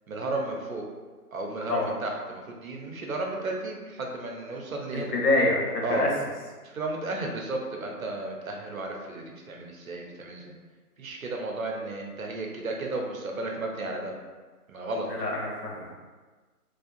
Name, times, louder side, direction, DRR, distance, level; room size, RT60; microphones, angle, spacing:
voice 1, 0.1-0.9 1.3-5.1 5.8-6.1 6.6-10.5 11.0-14.2 14.7-15.1, right 2 dB, 60° right, 1 dB, 0.6 m, -33 dB
voice 2, 4.9-6.1 15.2-16.0, left 2 dB, 85° left, -1 dB, 0.9 m, -26 dB
2.6 x 2.2 x 2.4 m, 1.3 s
hypercardioid pair, 175°, 47 cm